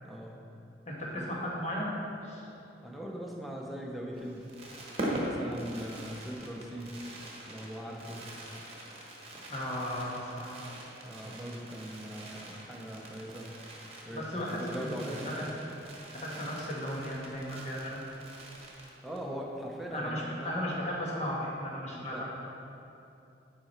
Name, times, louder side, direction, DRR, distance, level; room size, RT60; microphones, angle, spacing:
voice 1, 0.0-0.4 1.1-1.3 2.8-4.5 5.0-6.9 7.5-8.3 11.0-13.5 14.0-15.5 19.0-20.6 21.9-22.2, equal, ahead, -2 dB, 0.7 m, -41 dB
voice 2, 0.9-1.9 2.2-2.5 9.5-10.6 14.1-15.5 16.1-18.0 19.9-22.2, equal, 35° left, -4 dB, 1.4 m, -35 dB
Fireworks, 4.1-19.3 19.6-19.7 19.9-20.2, right 1 dB, 35° right, 1.2 m, -42 dB
9.5 x 5.0 x 4.3 m, 2.8 s
head